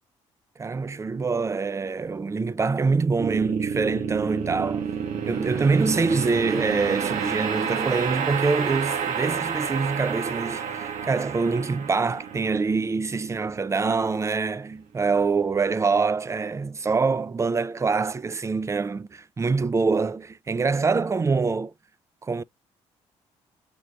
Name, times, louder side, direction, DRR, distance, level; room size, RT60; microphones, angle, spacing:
voice 1, 0.6-4.9 5.2-21.7 22.2-22.4, right 4 dB, 20° right, 0.3 m, -25 dB
sound 1, 3.2-14.4, right 7 dB, 65° right, 0.8 m, -30 dB
5.2 x 2.2 x 3.8 m
hypercardioid pair, 50°, 14 cm